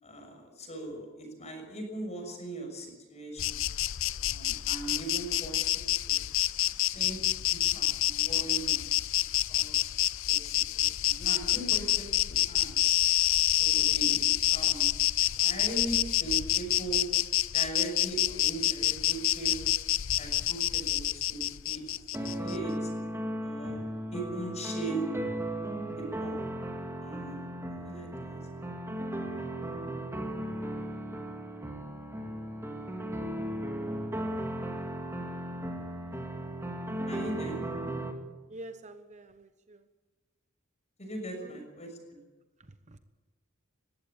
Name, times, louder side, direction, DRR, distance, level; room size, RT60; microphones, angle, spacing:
voice 1, 0.0-3.6 4.2-6.2 6.8-8.8 9.5-9.9 10.2-13.0 13.6-14.9 15.3-17.0 17.5-19.7 20.2-21.8 22.1-22.9 23.4-23.8 24.1-25.1 26.0-26.4 27.0-27.4 27.7-28.6 37.1-37.6 41.0-41.9, right 2 dB, 30° left, 3 dB, 6.3 m, -40 dB
Insect, 3.4-22.6, left 14 dB, 65° left, 0.6 m, -28 dB
sound 1, 22.1-38.1, right 1 dB, 10° right, 2.3 m, -36 dB
voice 2, 38.5-39.9 41.3-41.7 42.6-43.0, right 1 dB, 35° right, 10 dB, 1.0 m, -48 dB
21.0 x 15.5 x 8.8 m, 1.2 s
head